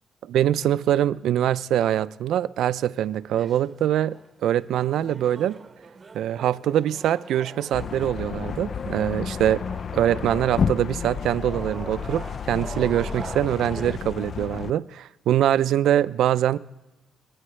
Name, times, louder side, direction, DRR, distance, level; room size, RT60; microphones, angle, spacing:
voice 1, 0.2-5.6 6.1-9.6 9.9-16.6, right 11 dB, 75° right, 0.4 m, -23 dB
sound 1, 3.1-14.0, right 4 dB, 30° right, 0.8 m, -43 dB
sound 2, 7.7-14.7, left 6 dB, 50° left, 0.3 m, -31 dB
24.5 x 9.5 x 3.2 m
cardioid pair, 90°, 0 cm